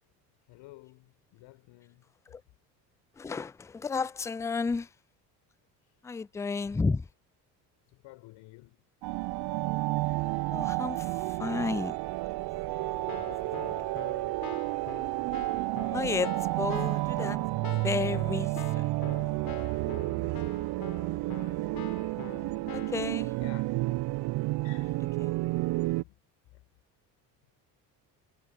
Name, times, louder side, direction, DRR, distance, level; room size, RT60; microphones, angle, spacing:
voice 1, 0.5-2.1 5.8-6.0 6.5-6.8 7.9-8.9 10.0-10.2 13.0-14.1 18.4-18.5 20.2-21.5 22.5-22.7 23.4-23.7 24.3-25.1 26.0-26.2 26.5-26.7, left 20 dB, 70° left, 5.6 m, -54 dB
voice 2, 3.2-4.9 6.0-7.0 10.5-11.0 11.4-12.0 15.9-16.3 16.6-17.4 17.8-18.5 22.9-23.3, left 4 dB, 5° left, 0.3 m, -31 dB
sound 1, 9.0-26.0, right 20 dB, 55° right, 0.6 m, -31 dB
Keyboard (musical), 12.8-23.1, left 9 dB, 45° left, 3.6 m, -45 dB
hypercardioid pair, 60°, 48 cm